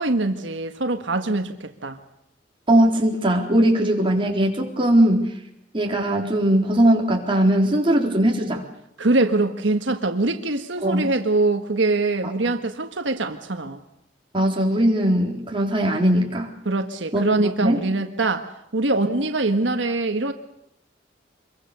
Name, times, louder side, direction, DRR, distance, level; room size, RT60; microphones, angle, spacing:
voice 1, 0.0-2.0 9.0-13.8 16.6-18.5 18.7-20.3, right 2 dB, 75° right, 6 dB, 1.5 m, -23 dB
voice 2, 2.7-5.3 5.7-8.6 10.8-11.1 14.3-16.5 17.1-17.2 17.6-17.8, right 1 dB, 30° right, 0 dB, 4.1 m, -19 dB
26.5 x 23.0 x 6.9 m, 0.80 s
head